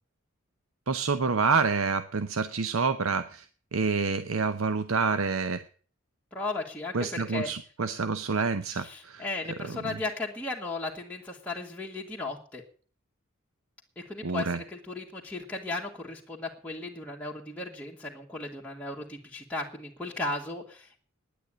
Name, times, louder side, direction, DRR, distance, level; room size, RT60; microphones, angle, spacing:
voice 1, 0.9-3.5 3.7-5.6 6.9-9.2 9.6-10.0 14.2-14.6, right 4 dB, 80° right, 10 dB, 0.8 m, -28 dB
voice 2, 6.3-7.5 8.7-12.6 13.9-21.0, left 2 dB, 5° left, -3 dB, 1.7 m, -36 dB
10.0 x 9.3 x 9.9 m, 0.43 s
head